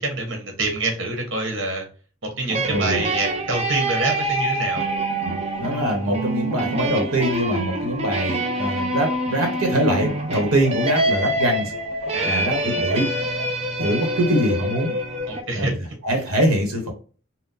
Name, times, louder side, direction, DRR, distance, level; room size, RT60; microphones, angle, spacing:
voice 1, 0.0-1.8 2.2-4.8 12.1-12.5 15.3-15.7, right 2 dB, 60° right, 2 dB, 1.1 m, -26 dB
sound 1, 2.5-15.4, right 1 dB, 30° right, 0.5 m, -26 dB
voice 2, 2.7-3.1 5.2-11.7 12.2-13.1 13.8-14.9 15.5-16.9, right 1 dB, 90° right, 3 dB, 1.0 m, -23 dB
3.7 x 2.1 x 2.6 m, 0.38 s
head